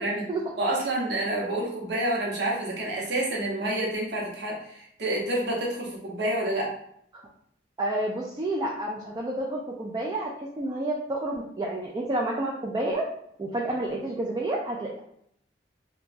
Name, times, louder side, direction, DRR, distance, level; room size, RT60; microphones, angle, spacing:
voice 1, 0.6-6.7, right 1 dB, 65° right, -3 dB, 0.8 m, -28 dB
voice 2, 7.8-13.0 13.4-15.0, right 1 dB, 25° right, -2 dB, 0.3 m, -29 dB
2.9 x 2.2 x 2.5 m, 0.71 s
head